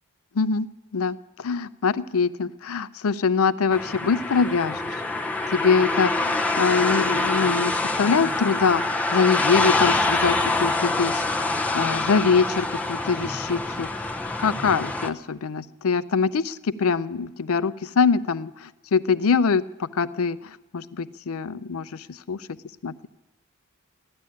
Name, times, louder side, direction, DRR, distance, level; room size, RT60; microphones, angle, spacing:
voice 1, 0.3-0.7 0.9-4.8 5.5-8.8 9.1-22.6 22.8-23.1, left 5 dB, 75° left, 15 dB, 0.5 m, -24 dB
sound 1, 3.7-15.1, left 2 dB, 5° left, 0.5 m, -25 dB
14.5 x 11.5 x 8.5 m, 1.1 s
head